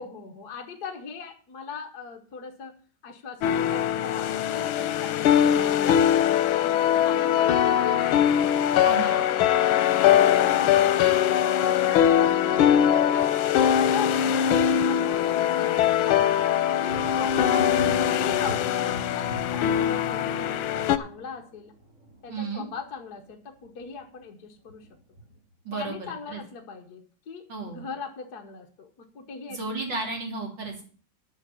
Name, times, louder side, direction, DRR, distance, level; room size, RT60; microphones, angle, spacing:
voice 1, 0.0-2.7 3.0-8.6 9.0-11.2 13.1-13.3 13.7-16.4 16.8-21.7 22.2-24.9 25.7-29.8, left 5 dB, 55° left, 3 dB, 1.6 m, -40 dB
sound 1, 3.4-21.0, left 10 dB, 90° left, 1.5 m, -22 dB
voice 2, 8.8-9.2 22.3-22.7 25.7-26.0 26.3-26.4 27.5-27.8 29.5-30.9, right 3 dB, 65° right, 0 dB, 3.7 m, -32 dB
Thunder, 16.8-23.3 23.6-24.2 24.7-25.5, right 1 dB, 40° right, 2.3 m, -41 dB
9.6 x 5.9 x 8.3 m, 0.42 s
omnidirectional pair, 2.2 m